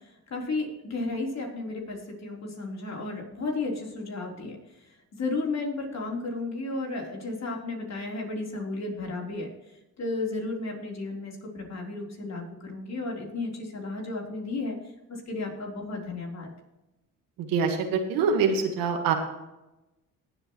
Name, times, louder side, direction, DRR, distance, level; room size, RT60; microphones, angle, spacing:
voice 1, 0.3-4.6 5.2-9.5 10.0-14.8 15.1-16.5, left 3 dB, 50° left, 0 dB, 3.8 m, -33 dB
voice 2, 17.4-19.1, right 5 dB, 90° right, 4 dB, 1.6 m, -25 dB
19.0 x 7.8 x 3.1 m, 0.97 s
cardioid pair, 75°, 34 cm